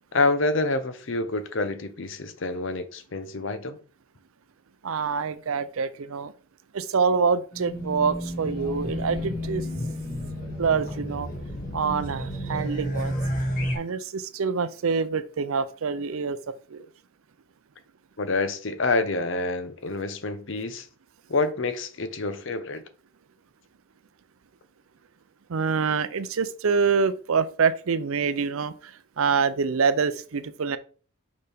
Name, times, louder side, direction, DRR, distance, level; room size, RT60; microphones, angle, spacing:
voice 1, 0.1-3.8 18.2-20.9 21.3-22.8, left 3 dB, 55° left, 0.7 m, -27 dB
voice 2, 4.8-6.3 6.7-9.7 10.6-11.3 11.7-13.1 13.7-16.4 16.7-16.9 25.5-30.8, right 5 dB, 70° right, 0.5 m, -26 dB
Race car auto racing / Alarm, 7.5-13.8, equal, 40° left, 2.1 m, -31 dB
6.6 x 5.2 x 3.5 m
head